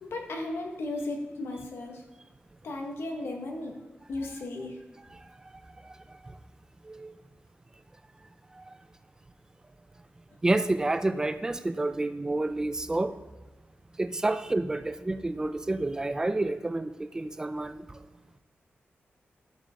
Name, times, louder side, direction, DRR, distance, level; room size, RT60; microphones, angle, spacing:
voice 1, 0.0-2.0 2.6-3.8 4.1-4.8, left 2 dB, 80° left, 2 dB, 1.6 m, -35 dB
voice 2, 10.4-13.1 14.0-17.8, right 2 dB, 15° right, 10 dB, 0.5 m, -29 dB
12.5 x 7.3 x 3.8 m, 1.3 s
wide cardioid pair, 180°, 4 cm